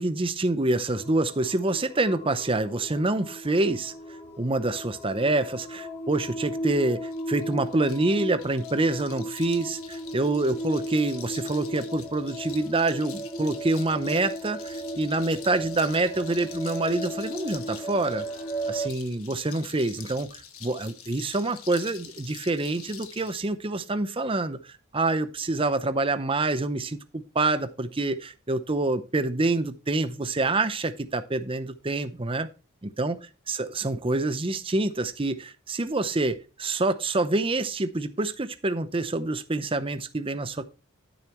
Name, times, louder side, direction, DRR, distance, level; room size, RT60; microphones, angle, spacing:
voice 1, 0.0-18.2 18.7-32.5 32.8-33.2 33.5-40.7, right 2 dB, 25° right, 0.7 m, -27 dB
sound 1, 0.9-18.9, equal, 25° left, 2.5 m, -36 dB
sound 2, 7.0-23.5, left 9 dB, 75° left, 1.4 m, -46 dB
12.5 x 7.1 x 3.1 m
head